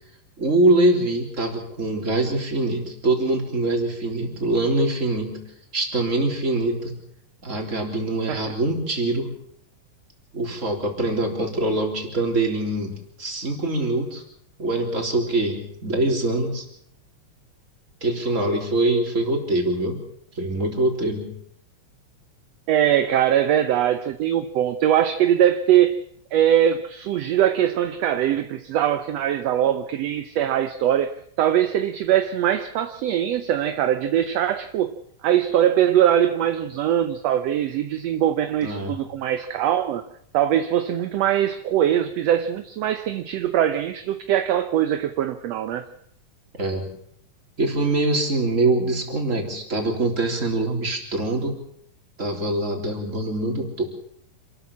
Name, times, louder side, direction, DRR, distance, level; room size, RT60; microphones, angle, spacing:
voice 1, 0.4-5.4 5.7-6.9 7.4-9.3 10.3-14.2 14.6-16.7 18.0-20.0 20.4-21.4 38.6-39.0 46.6-46.8 47.6-51.6 52.2-53.8, right 2 dB, 25° right, 2 dB, 3.7 m, -24 dB
voice 2, 22.7-26.0 26.3-40.0 40.3-45.8, right 10 dB, 70° right, 9 dB, 1.7 m, -22 dB
27.5 x 13.0 x 7.2 m, 0.68 s
omnidirectional pair, 3.7 m